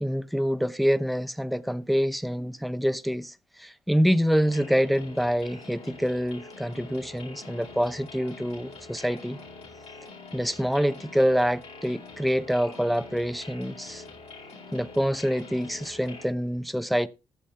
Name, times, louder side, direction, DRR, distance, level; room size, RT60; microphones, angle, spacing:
voice 1, 0.0-9.4 10.3-14.0 14.7-17.1, equal, ahead, 0.8 m, -26 dB
sound 1, 4.4-16.3, left 3 dB, 60° left, 4.8 m, -45 dB
18.0 x 7.0 x 3.3 m
hypercardioid pair, 45°, 12 cm